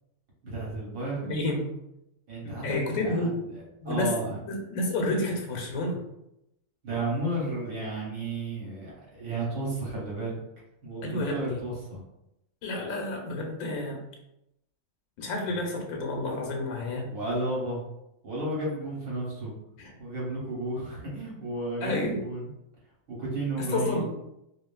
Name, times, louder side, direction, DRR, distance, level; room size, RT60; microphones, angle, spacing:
voice 1, 0.4-1.3 2.3-4.4 6.8-10.4 10.8-12.0 15.5-15.6 17.1-17.8 18.2-19.5 20.0-22.4 23.1-24.0, right 2 dB, 80° right, -5 dB, 1.4 m, -33 dB
voice 2, 1.2-1.7 2.4-3.4 3.8-4.1 4.5-6.0 11.0-11.6 12.6-14.0 15.2-17.1 19.8-19.9 21.8-22.2 23.7-24.1, left 2 dB, 85° left, 1 dB, 1.0 m, -30 dB
2.6 x 2.4 x 2.2 m, 0.85 s
omnidirectional pair, 1.4 m